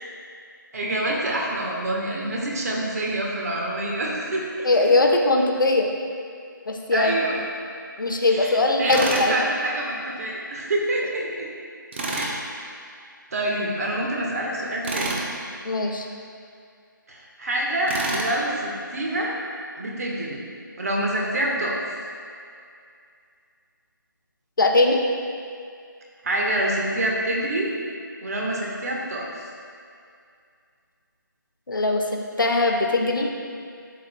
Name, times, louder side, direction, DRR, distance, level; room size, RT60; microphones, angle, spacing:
voice 1, 0.7-4.9 6.9-7.4 8.2-11.5 12.1-12.5 13.3-15.2 17.1-19.4 19.8-20.4 20.8-21.8 26.2-27.7 28.2-29.3, right 1 dB, 50° right, -2 dB, 1.4 m, -26 dB
voice 2, 4.6-5.9 6.7-7.1 8.0-9.3 15.6-16.0 24.6-25.0 31.7-32.0 32.4-33.3, left 2 dB, 70° left, 2 dB, 0.9 m, -20 dB
Tools, 8.9-9.3 11.9-12.3 14.8-15.3 17.9-18.3, right 2 dB, 30° right, 0.7 m, -28 dB
11.5 x 5.4 x 2.3 m, 2.3 s
figure-of-eight pair, 155°, 11 cm